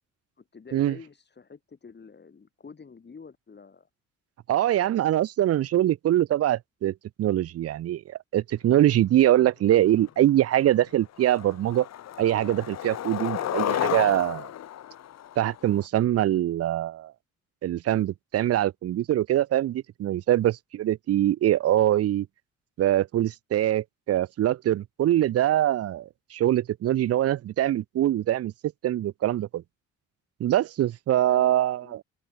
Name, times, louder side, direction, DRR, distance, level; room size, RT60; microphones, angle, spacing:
voice 1, 0.4-3.9 31.3-31.5 31.8-32.0, left 5 dB, 35° left, 7.0 m, -48 dB
voice 2, 4.5-11.9 12.2-14.5 15.4-17.1 17.6-22.3 22.8-28.5 28.8-29.6 30.4-32.0, right 13 dB, 55° right, 0.6 m, -23 dB
Skateboard, 10.1-10.2 10.6-10.9 11.2-15.8, left 11 dB, 60° left, 1.1 m, -32 dB
cardioid pair, 90°, 30 cm